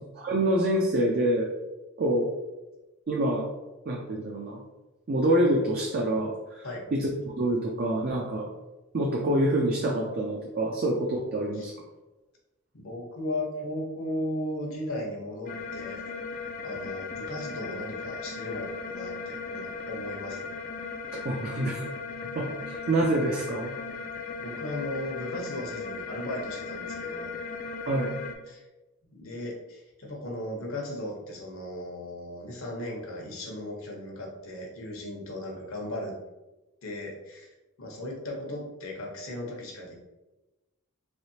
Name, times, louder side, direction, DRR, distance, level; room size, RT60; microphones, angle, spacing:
voice 1, 0.2-1.5 2.0-2.3 3.1-3.5 3.9-4.6 5.1-6.7 6.9-8.5 8.9-11.7 21.2-21.8 22.4-23.7 27.9-28.1, right 1 dB, 45° right, 0 dB, 0.4 m, -26 dB
voice 2, 12.7-16.0 16.6-20.4 24.4-27.3 28.5-28.6 29.1-36.2 36.8-37.5 37.8-39.9, left 1 dB, 70° left, -1 dB, 0.9 m, -36 dB
sound 1, 15.5-28.3, left 4 dB, 40° left, 0.3 m, -37 dB
3.5 x 3.3 x 2.7 m, 1.1 s
head